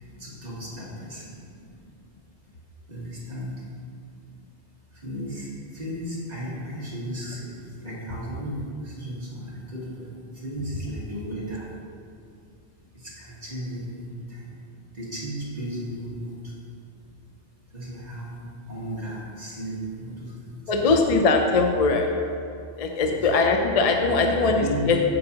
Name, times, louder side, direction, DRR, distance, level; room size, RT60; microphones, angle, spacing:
voice 1, 0.2-1.3 2.9-3.6 5.0-11.7 12.9-14.5 14.9-16.4 17.7-18.4 18.7-20.6 23.0-23.2 24.0-24.1 24.6-24.9, equal, 40° right, -6 dB, 1.5 m, -35 dB
voice 2, 20.7-22.2 22.8-25.0, left 3 dB, 45° left, 3 dB, 0.5 m, -21 dB
9.3 x 6.5 x 2.8 m, 2.4 s
omnidirectional pair, 1.2 m